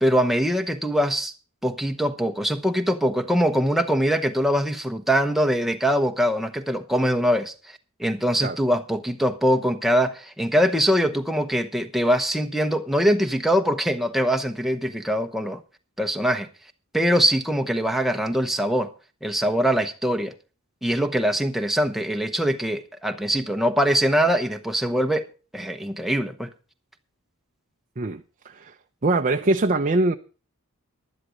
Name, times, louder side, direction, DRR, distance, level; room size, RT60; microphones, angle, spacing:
voice 1, 0.0-1.3 1.6-15.6 16.0-16.5 16.9-18.9 19.2-20.3 20.8-26.5, equal, ahead, 0.9 m, -23 dB
voice 2, 28.0-28.7 29.0-30.1, right 2 dB, 35° right, 0.6 m, -23 dB
11.5 x 11.0 x 5.1 m
head